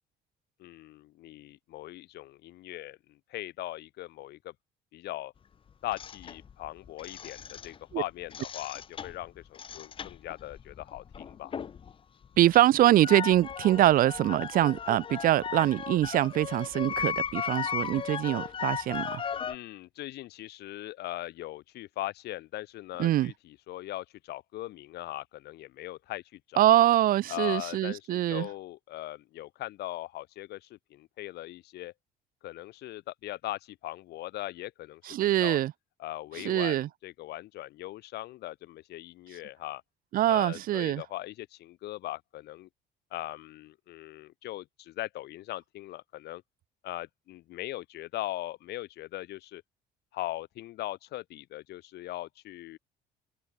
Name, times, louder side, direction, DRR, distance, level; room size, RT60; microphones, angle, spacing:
voice 1, 0.6-4.5 4.9-5.3 5.8-11.5 19.5-26.6 27.3-31.9 32.4-35.6 36.0-39.8 40.3-42.7 43.1-46.4 46.8-49.6 50.1-52.8, left 16 dB, 75° left, 1.8 m, -40 dB
sound 1, 5.9-7.9 8.2-11.9 12.2-19.6, left 7 dB, 30° left, 0.6 m, -36 dB
voice 2, 12.4-19.2 23.0-23.3 26.6-28.5 35.1-35.7 36.4-36.9 40.1-41.0, right 13 dB, 60° right, 0.5 m, -24 dB
cardioid pair, 110°, 17 cm